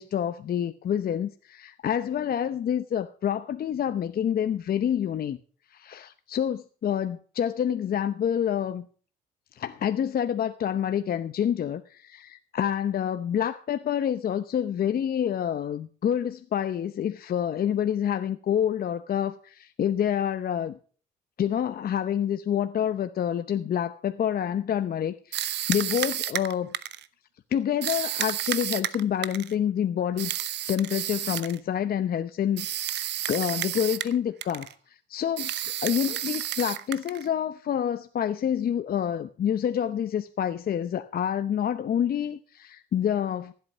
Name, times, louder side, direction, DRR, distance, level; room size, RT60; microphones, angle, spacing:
voice 1, 0.0-5.4 5.7-8.9 9.6-20.8 21.4-26.7 27.5-30.3 30.7-43.5, left 9 dB, 50° left, 0.8 m, -28 dB
sound 1, 25.3-27.1 27.8-29.5 30.2-31.6 32.6-34.2 34.4-34.7 35.4-37.3, right 12 dB, 65° right, 0.9 m, -31 dB
15.0 x 8.4 x 6.1 m
supercardioid pair, 65°, 19 cm